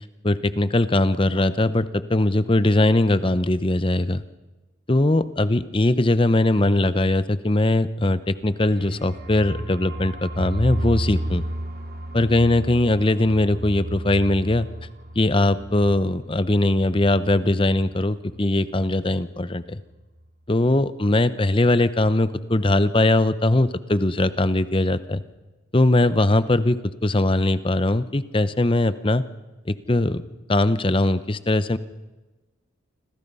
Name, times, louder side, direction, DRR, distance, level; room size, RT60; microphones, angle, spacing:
voice 1, 0.2-4.2 4.9-11.4 12.1-14.7 15.2-19.8 20.5-25.2 25.7-29.2 29.7-30.2 30.5-31.8, left 1 dB, 25° left, 14 dB, 0.8 m, -20 dB
sound 1, 8.4-18.0 18.3-18.4 18.7-19.2, right 1 dB, 45° right, 2.3 m, -33 dB
28.0 x 26.0 x 5.5 m, 1.2 s
head